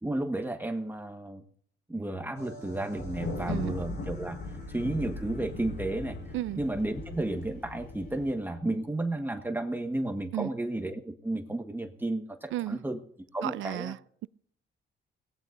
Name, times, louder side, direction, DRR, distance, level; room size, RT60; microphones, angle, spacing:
voice 1, 0.0-1.4 1.9-4.4 4.7-6.2 6.6-13.0 13.3-13.9, right 2 dB, 10° right, 1.5 m, -32 dB
sound 1, 2.3-8.6, left 2 dB, 60° left, 7.5 m, -50 dB
Thunder, 3.0-8.3, left 2 dB, 90° left, 4.9 m, -38 dB
voice 2, 13.4-14.3, right 15 dB, 75° right, 0.5 m, -34 dB
23.0 x 18.5 x 2.6 m
cardioid pair, 90°, 20 cm